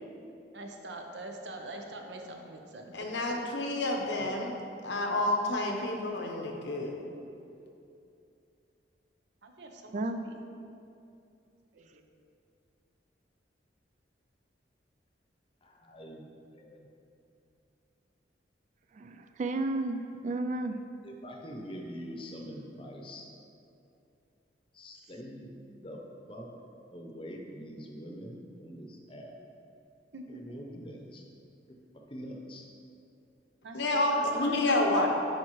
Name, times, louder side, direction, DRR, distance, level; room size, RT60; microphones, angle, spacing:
voice 1, 0.5-3.3 9.4-10.4 11.7-12.0 30.1-30.4 33.6-35.1, right 2 dB, 75° right, 3 dB, 0.7 m, -43 dB
voice 2, 2.9-4.5 4.8-7.0 33.7-35.1, left 2 dB, 80° left, 1 dB, 0.9 m, -29 dB
voice 3, 9.9-10.3 18.9-20.8, right 2 dB, 40° right, 8 dB, 0.3 m, -33 dB
voice 4, 15.6-16.9 21.0-23.3 24.7-25.5 25.8-26.0 26.3-26.5 26.9-29.3 30.3-31.3 31.7-31.8 32.1-32.7, equal, 30° left, 1 dB, 0.8 m, -44 dB
10.5 x 4.8 x 3.1 m, 2.7 s
head